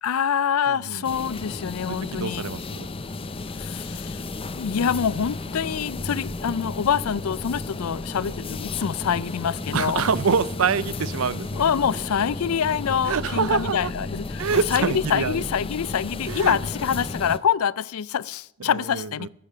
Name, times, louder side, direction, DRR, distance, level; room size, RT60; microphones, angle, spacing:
voice 1, 0.0-2.5 3.6-4.2 4.6-10.0 11.6-19.3, left 7 dB, 80° left, 0.4 m, -25 dB
voice 2, 0.7-1.0 1.9-2.9 8.1-8.3 9.7-11.6 13.1-13.9 14.4-15.4 16.3-16.6 18.6-19.3, right 5 dB, 75° right, 0.6 m, -26 dB
sound 1, 1.0-17.4, left 2 dB, 25° left, 0.5 m, -33 dB
14.0 x 8.8 x 7.6 m
head